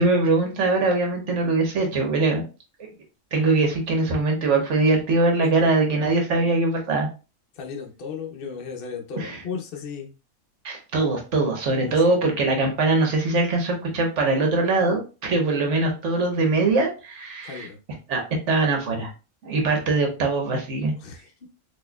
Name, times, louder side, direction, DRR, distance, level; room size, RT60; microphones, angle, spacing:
voice 1, 0.0-2.4 3.3-7.1 9.2-9.4 10.6-17.7 18.1-19.1 19.4-20.9, right 3 dB, 70° right, 2 dB, 1.3 m, -22 dB
voice 2, 5.4-5.7 6.3-6.5 7.5-10.1 11.7-12.5 17.4-17.8 20.9-21.5, left 6 dB, 55° left, 2 dB, 0.8 m, -36 dB
4.2 x 2.7 x 2.2 m, 0.32 s
omnidirectional pair, 1.3 m